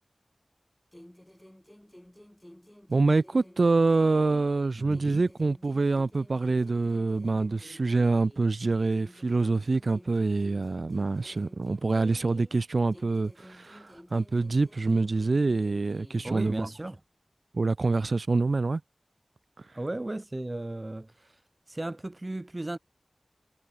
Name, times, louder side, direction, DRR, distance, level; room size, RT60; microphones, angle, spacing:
sound 1, 0.9-4.6 4.9-8.5 8.9-12.6 12.9-16.5, equal, 10° left, 6.8 m, -52 dB
voice 1, 2.9-16.7 17.5-18.8, right 3 dB, 85° right, 0.5 m, -26 dB
voice 2, 4.7-5.2 16.2-17.0 19.7-21.4 21.7-22.8, right 2 dB, 40° right, 1.9 m, -35 dB
wide cardioid pair, 45°, 0 cm